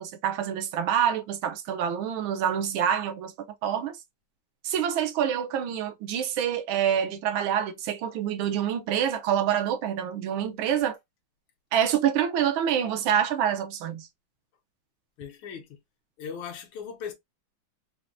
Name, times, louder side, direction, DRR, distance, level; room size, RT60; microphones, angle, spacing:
voice 1, 0.0-3.3 3.6-4.0 4.6-11.0 11.7-14.1, right 9 dB, 80° right, 1.4 m, -26 dB
voice 2, 15.2-15.8 16.2-17.1, left 7 dB, 80° left, 1.5 m, -38 dB
4.5 x 2.1 x 2.4 m
omnidirectional pair, 2.2 m